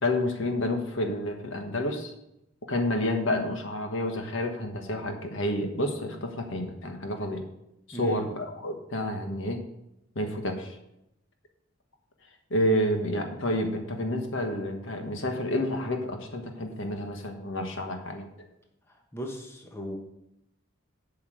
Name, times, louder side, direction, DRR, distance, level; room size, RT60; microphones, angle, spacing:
voice 1, 0.0-2.1 2.7-7.4 7.9-9.6 10.1-10.8 12.5-18.3, left 1 dB, 65° left, 4 dB, 1.4 m, -29 dB
voice 2, 7.9-8.3 18.9-20.0, equal, 10° left, 1 dB, 1.1 m, -38 dB
8.0 x 5.7 x 7.8 m, 0.84 s
head